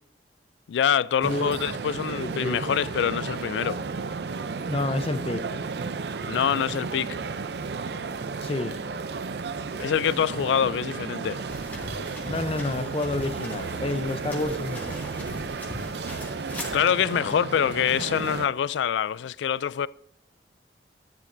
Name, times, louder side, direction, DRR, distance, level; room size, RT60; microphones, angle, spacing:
voice 1, 0.7-3.8 6.3-7.2 9.8-11.4 16.7-19.9, left 8 dB, 90° left, 0.3 m, -25 dB
sound 1, 1.2-18.5, right 4 dB, 70° right, 0.5 m, -33 dB
voice 2, 2.1-2.6 4.7-5.4 8.4-8.8 12.3-15.0, left 2 dB, 30° left, 0.6 m, -29 dB
sound 2, 11.5-16.8, left 1 dB, 10° left, 1.8 m, -40 dB
11.5 x 10.5 x 2.6 m
head